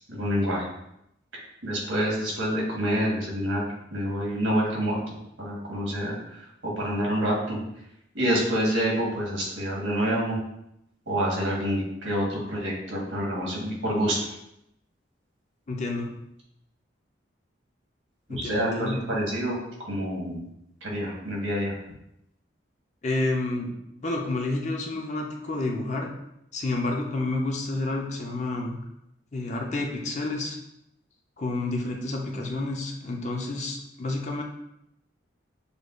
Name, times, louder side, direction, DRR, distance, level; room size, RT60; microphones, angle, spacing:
voice 1, 0.1-0.7 1.6-7.6 8.1-10.4 11.1-14.2 18.3-19.6 19.9-20.5 20.8-21.7, equal, 90° right, -3 dB, 1.4 m, -27 dB
voice 2, 15.7-16.1 18.3-19.0 23.0-26.1 26.5-28.8 29.3-30.6 31.4-34.4, left 2 dB, 35° left, 1 dB, 0.6 m, -29 dB
6.6 x 2.2 x 2.5 m, 0.81 s
head